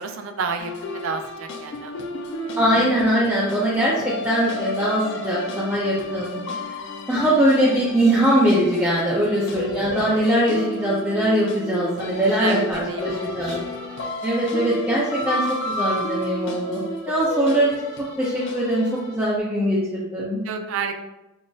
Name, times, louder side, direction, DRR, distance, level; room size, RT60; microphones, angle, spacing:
voice 1, 0.0-2.0 2.4-2.5 9.2-9.5 12.2-13.6 20.4-21.0, right 5 dB, 75° right, 6 dB, 0.4 m, -31 dB
sound 1, 0.6-19.3, left 1 dB, 60° left, 0.4 m, -31 dB
voice 2, 2.6-6.4 7.1-13.6 14.2-17.8 18.2-20.4, right 1 dB, 10° right, -7 dB, 0.4 m, -21 dB
3.8 x 2.5 x 2.3 m, 1.0 s
head